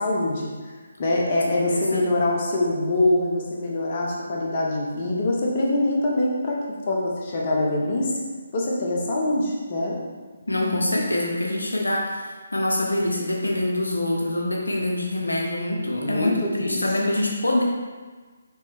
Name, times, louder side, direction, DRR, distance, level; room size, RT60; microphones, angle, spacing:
voice 1, 0.0-8.1 8.5-10.0 16.0-16.8, left 1 dB, 35° left, -3 dB, 0.9 m, -24 dB
voice 2, 1.7-2.1 10.5-17.6, left 1 dB, 80° left, -1 dB, 0.7 m, -25 dB
4.5 x 3.1 x 3.5 m, 1.4 s
figure-of-eight pair, 145°, 0 cm